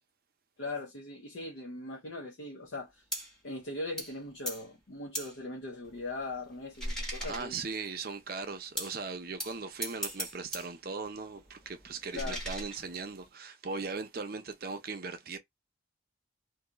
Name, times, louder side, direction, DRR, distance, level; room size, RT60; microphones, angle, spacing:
voice 1, 0.6-3.0 3.4-7.6 12.1-12.4, left 2 dB, 70° left, 0.7 m, -40 dB
sound 1, 3.1-3.4 4.0-4.2 4.5-4.7 5.1-5.4 5.8-7.9 8.8-9.0 9.4-10.7 11.0-13.3, right 1 dB, 5° left, 0.9 m, -40 dB
voice 2, 7.2-15.4, right 4 dB, 50° right, 0.6 m, -39 dB
2.7 x 2.3 x 3.8 m
head